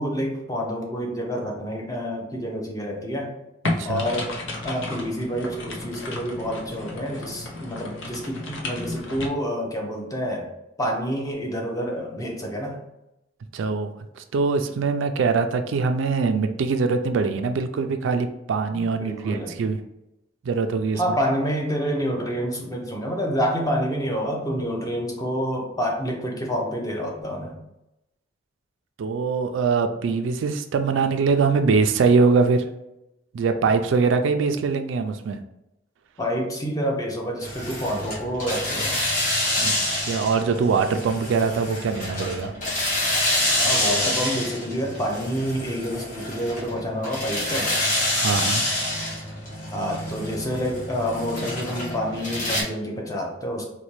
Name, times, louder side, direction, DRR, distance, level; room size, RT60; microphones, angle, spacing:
voice 1, 0.0-3.4 3.8-4.3 4.6-10.5 10.8-12.8 18.7-19.5 21.0-27.6 36.2-39.0 43.5-47.8 49.7-53.6, equal, 20° left, 1 dB, 0.6 m, -28 dB
sound 1, 3.6-9.3, left 2 dB, 90° left, 0.6 m, -33 dB
voice 2, 3.6-4.1 13.5-19.8 20.4-21.2 29.0-32.6 33.3-35.4 39.6-42.5 48.2-48.7 48.9-49.1, right 4 dB, 80° right, 8 dB, 0.3 m, -23 dB
sound 2, 37.4-52.6, left 1 dB, 40° left, 1.0 m, -27 dB
4.1 x 2.2 x 3.0 m, 0.89 s
head